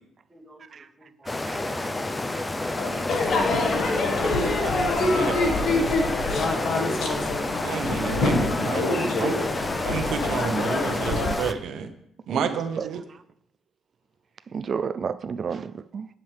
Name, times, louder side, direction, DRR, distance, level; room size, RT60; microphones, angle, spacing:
voice 1, 0.3-2.5, right 2 dB, 25° right, 2.1 m, -54 dB
voice 2, 1.2-1.6 2.3-2.7 3.4-3.5 4.6-4.7 12.3-12.9 14.5-16.1, right 6 dB, 45° right, 0.4 m, -32 dB
sound 1, 1.3-11.5, left 2 dB, 20° left, 0.6 m, -30 dB
voice 3, 2.7-4.7 7.0-7.1 7.9-8.4 8.7-9.5, left 1 dB, 75° left, 2.4 m, -31 dB
Crowd / Fireworks, 3.1-11.3, left 2 dB, 60° left, 1.5 m, -26 dB
voice 4, 5.1-5.9 7.6-9.3 9.8-11.9 12.3-13.0, right 6 dB, 75° right, 0.9 m, -30 dB
10.5 x 7.3 x 3.5 m
cardioid pair, 90°, 0 cm